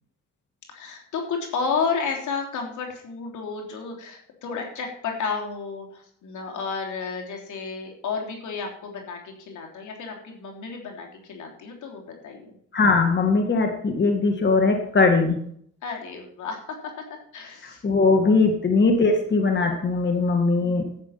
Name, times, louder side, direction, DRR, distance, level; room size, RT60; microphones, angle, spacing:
voice 1, 0.7-12.6 15.8-17.8 18.1-18.3 20.6-21.0, left 5 dB, 75° left, 1 dB, 3.4 m, -32 dB
voice 2, 12.7-15.4 17.6-20.9, left 3 dB, 35° left, 4 dB, 2.0 m, -20 dB
11.0 x 8.5 x 5.8 m, 0.64 s
cardioid pair, 90°, 30 cm